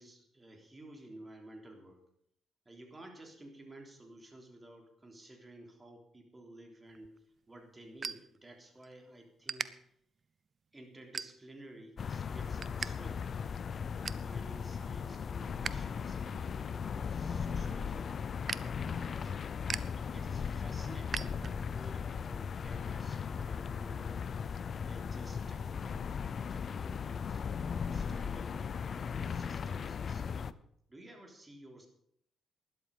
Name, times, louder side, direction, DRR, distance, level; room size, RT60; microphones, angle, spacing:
voice 1, 0.0-2.0 2.6-9.7 10.7-13.6 14.0-18.2 18.5-19.3 20.1-24.3 24.9-30.5 30.9-31.9, right 1 dB, 20° right, 2 dB, 3.3 m, -54 dB
sound 1, 6.9-8.9 9.2-9.7 10.2-10.5 11.0-11.7 12.1-12.9 13.2-13.3 13.7-14.3 14.8-15.7 16.1-21.9, right 5 dB, 40° right, 0.6 m, -42 dB
sound 2, 12.0-30.5, left 6 dB, 50° left, 0.5 m, -37 dB
12.5 x 11.0 x 5.4 m, 0.70 s
cardioid pair, 90°, 0 cm